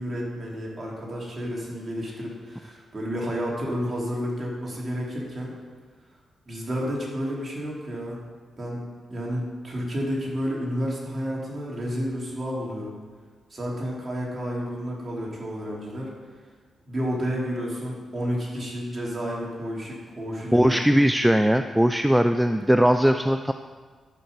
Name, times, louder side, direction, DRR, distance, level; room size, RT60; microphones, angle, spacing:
voice 1, 0.0-5.5 6.5-8.2 8.6-8.8 9.1-12.9 13.5-16.1 16.8-20.8, equal, 35° right, -3 dB, 3.2 m, -31 dB
voice 2, 20.5-23.5, equal, 5° right, 8 dB, 0.4 m, -20 dB
13.5 x 5.8 x 5.3 m, 1.5 s
cardioid pair, 70°, 0 cm